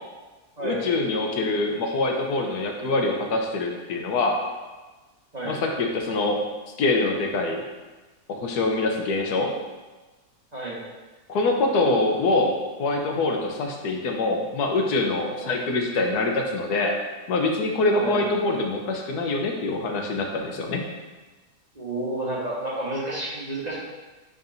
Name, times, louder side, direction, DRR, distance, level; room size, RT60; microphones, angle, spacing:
voice 1, 0.6-4.4 5.4-6.4 6.8-7.6 8.3-9.5 11.3-17.0 17.3-20.8, left 2 dB, 90° left, 2 dB, 1.4 m, -24 dB
voice 2, 21.7-23.8, right 2 dB, 30° right, -7 dB, 1.4 m, -30 dB
10.5 x 4.0 x 2.7 m, 1.2 s
omnidirectional pair, 1.6 m